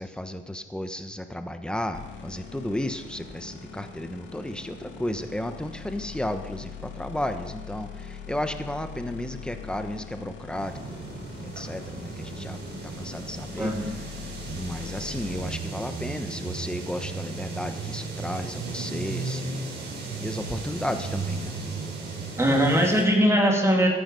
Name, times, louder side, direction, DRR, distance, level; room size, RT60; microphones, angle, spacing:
voice 1, 0.0-11.1 11.3-12.6 12.8-13.7 14.6-19.7 20.2-21.5, left 1 dB, 5° left, 8 dB, 1.1 m, -33 dB
sound 1, 1.9-15.5, left 6 dB, 70° left, 2.1 m, -42 dB
sound 2, 10.6-23.0, right 3 dB, 60° right, 4.6 m, -35 dB
voice 2, 13.6-13.9 22.4-23.9, equal, 15° right, 0 dB, 2.6 m, -21 dB
14.0 x 10.0 x 5.3 m, 1.3 s
cardioid pair, 90°, 20 cm